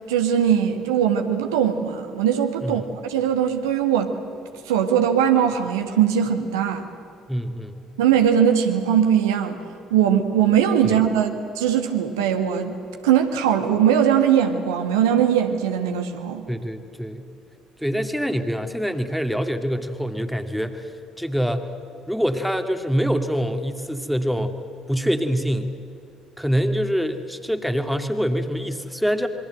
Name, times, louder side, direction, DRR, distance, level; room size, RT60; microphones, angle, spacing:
voice 1, 0.1-4.1 4.7-6.9 8.0-9.6 9.9-11.3 11.6-12.8 13.0-16.4, right 9 dB, 70° right, 5 dB, 1.8 m, -20 dB
voice 2, 7.3-7.8 10.8-11.0 16.5-17.3 17.8-20.9 21.2-21.7 22.1-24.5 24.9-25.7 26.4-29.3, equal, ahead, 7 dB, 2.2 m, -25 dB
27.0 x 23.5 x 7.8 m, 2.7 s
figure-of-eight pair, 50°, 2 cm